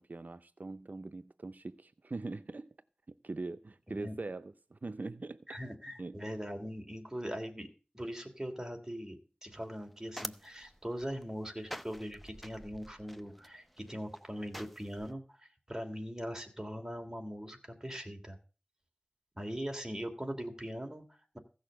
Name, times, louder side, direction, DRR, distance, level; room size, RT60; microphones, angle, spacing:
voice 1, 0.0-2.7 3.2-5.4 6.0-6.2, right 3 dB, 70° right, 0.5 m, -42 dB
voice 2, 5.5-7.7 7.9-18.4 19.4-21.4, equal, 15° right, 2.9 m, -41 dB
sound 1, 9.5-15.1, equal, ahead, 0.7 m, -48 dB
15.5 x 6.5 x 6.7 m
wide cardioid pair, 45°, 3 cm